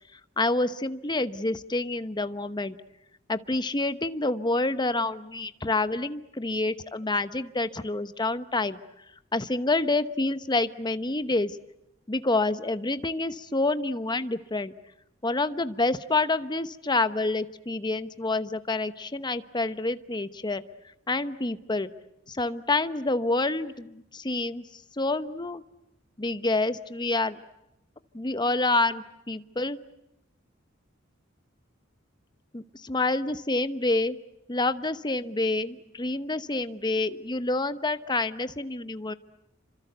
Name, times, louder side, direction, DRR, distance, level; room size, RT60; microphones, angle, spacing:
voice 1, 0.4-2.7 3.3-8.8 9.3-11.6 12.1-14.7 15.2-20.6 21.1-21.9 22.3-24.6 25.0-25.6 26.2-27.4 28.1-29.8 32.5-34.2 34.5-39.1, left 2 dB, 20° left, 12 dB, 1.0 m, -28 dB
28.5 x 25.5 x 8.1 m, 0.87 s
head